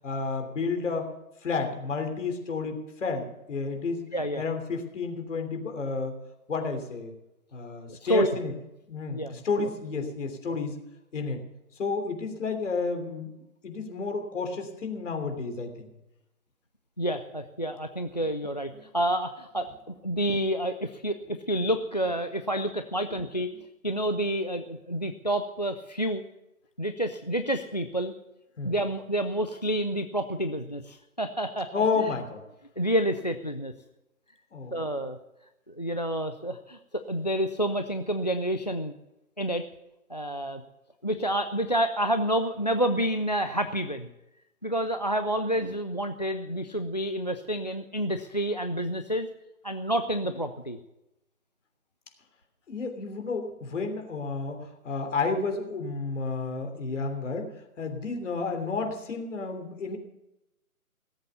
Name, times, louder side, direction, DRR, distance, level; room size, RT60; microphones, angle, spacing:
voice 1, 0.0-1.1 1.4-4.0 4.3-6.2 6.5-7.1 7.5-8.5 8.9-10.7 11.1-11.4 11.8-13.3 13.6-15.9 28.6-28.7 31.7-32.4 34.5-34.8 52.7-60.0, left 4 dB, 55° left, 5 dB, 3.3 m, -31 dB
voice 2, 4.1-4.4 8.0-8.4 9.2-9.7 17.0-23.5 23.8-26.2 26.8-28.1 28.6-32.0 32.8-33.7 34.7-35.2 35.7-36.8 37.1-38.9 39.4-39.6 40.1-40.6 41.0-44.1 44.6-49.3 49.6-50.8, right 1 dB, 30° left, 10 dB, 0.4 m, -29 dB
18.5 x 8.1 x 6.8 m, 0.91 s
figure-of-eight pair, 155°, 44 cm